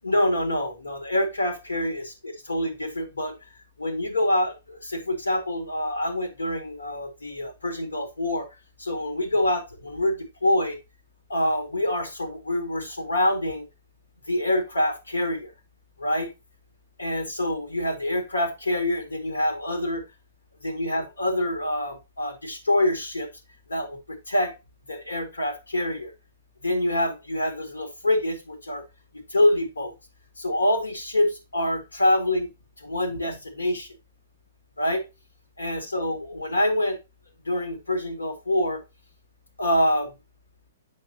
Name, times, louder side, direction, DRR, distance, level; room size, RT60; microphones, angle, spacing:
voice 1, 0.0-2.0 2.5-3.3 3.8-8.5 8.8-10.8 11.3-13.7 14.3-15.5 16.0-16.3 17.0-20.0 20.6-23.3 23.7-24.5 24.9-26.1 26.6-28.8 29.1-29.9 30.4-32.5 32.8-33.9 34.8-35.0 35.6-37.0 37.5-38.8 39.6-40.1, left 1 dB, 75° left, 6 dB, 2.0 m, -26 dB
7.7 x 6.3 x 2.8 m, 0.25 s
figure-of-eight pair, 115°, 0 cm